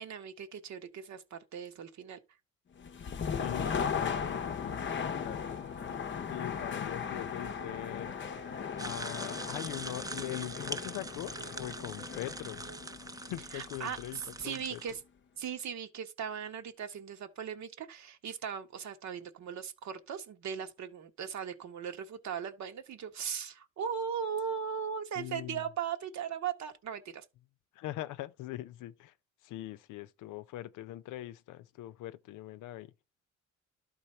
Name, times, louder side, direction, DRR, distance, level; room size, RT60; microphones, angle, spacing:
voice 1, 0.0-2.2 13.5-15.0 15.4-27.2, right 7 dB, 65° right, 1.2 m, -38 dB
sound 1, 2.8-14.6, left 7 dB, 40° left, 0.6 m, -37 dB
voice 2, 3.4-5.6 6.3-8.1 8.8-12.7 13.2-14.8 25.2-25.7 27.7-29.1 29.4-32.9, left 15 dB, 90° left, 0.6 m, -42 dB
sound 2, 5.2-12.8, right 4 dB, 85° right, 1.5 m, -54 dB
sound 3, 8.8-14.9, right 2 dB, 10° right, 0.6 m, -43 dB
12.0 x 4.1 x 4.3 m
cardioid pair, 90°, 30 cm